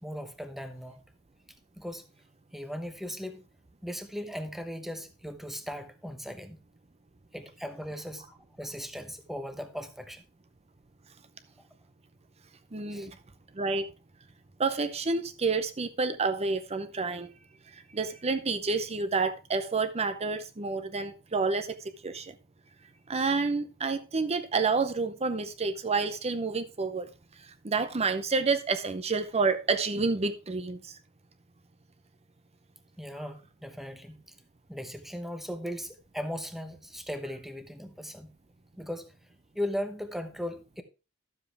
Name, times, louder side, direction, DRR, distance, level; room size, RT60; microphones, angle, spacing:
voice 1, 0.0-1.0 1.8-2.0 2.5-3.4 3.8-6.6 7.3-10.2 12.9-13.1 33.0-34.2 34.7-38.3 38.8-39.1 39.5-40.8, equal, ahead, 1.0 m, -38 dB
voice 2, 12.7-13.1 13.5-13.9 14.6-17.3 17.9-22.4 23.1-27.1 27.6-31.0, right 4 dB, 30° right, 0.7 m, -29 dB
12.0 x 7.4 x 3.4 m
head